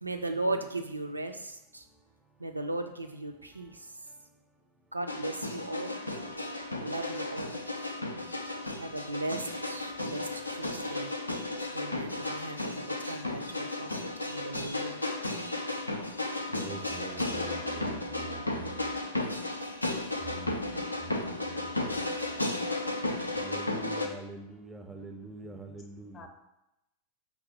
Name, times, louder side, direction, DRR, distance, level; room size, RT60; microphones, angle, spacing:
voice 1, 0.0-1.9 2.4-3.9 4.9-6.0 6.8-7.6 8.8-11.1 11.7-15.0, right 2 dB, 85° right, 6 dB, 0.3 m, -37 dB
sound 1, 5.1-24.1, left 2 dB, 85° left, 0.3 m, -34 dB
voice 2, 16.5-18.8 20.2-20.6 21.0-22.1 23.4-26.3, right 3 dB, 10° right, 4 dB, 0.4 m, -44 dB
voice 3, 25.4-26.3, left 3 dB, 25° left, 3 dB, 0.6 m, -54 dB
5.2 x 2.1 x 2.9 m, 0.88 s
figure-of-eight pair, 90°, 0 cm